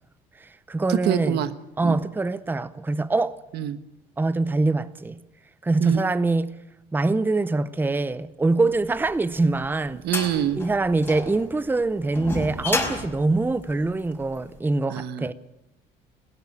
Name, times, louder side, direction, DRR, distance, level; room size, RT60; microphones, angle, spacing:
voice 1, 0.4-1.4 1.8-3.4 4.2-5.2 5.6-6.6 6.9-10.0 10.5-15.3, right 3 dB, 10° right, 0.7 m, -24 dB
voice 2, 0.9-1.5 1.8-2.0 3.5-3.8 5.8-6.0 10.0-10.6 14.9-15.3, right 11 dB, 75° right, 1.3 m, -25 dB
sound 1, 9.0-14.4, left 2 dB, 10° left, 4.9 m, -32 dB
19.0 x 16.5 x 8.5 m
cardioid pair, 110°, 17 cm